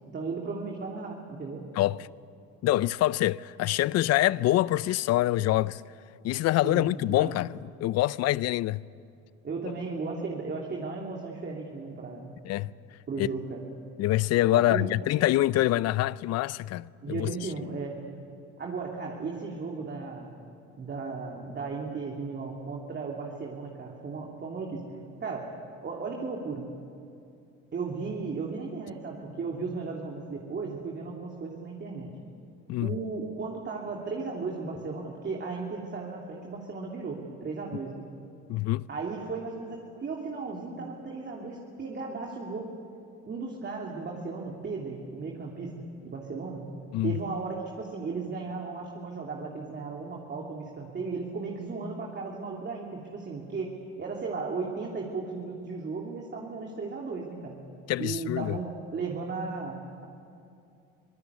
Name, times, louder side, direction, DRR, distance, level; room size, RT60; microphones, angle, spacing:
voice 1, 0.1-1.7 6.6-7.3 9.4-12.3 13.1-13.6 14.5-14.9 17.0-18.0 18.6-20.3 20.8-24.8 25.2-25.5 25.8-26.6 27.7-32.1 32.8-38.1 38.9-42.7 43.3-45.7 46.0-46.6 47.0-57.6 58.0-60.1, right 4 dB, 35° right, 3.1 m, -35 dB
voice 2, 2.6-5.8 6.2-7.5 7.8-8.8 12.5-12.7 13.2-13.3 14.0-17.3 32.7-32.9 38.5-38.9 46.9-47.2 57.9-58.6, left 15 dB, 60° left, 0.6 m, -25 dB
25.0 x 18.5 x 8.3 m
supercardioid pair, 85°, 29 cm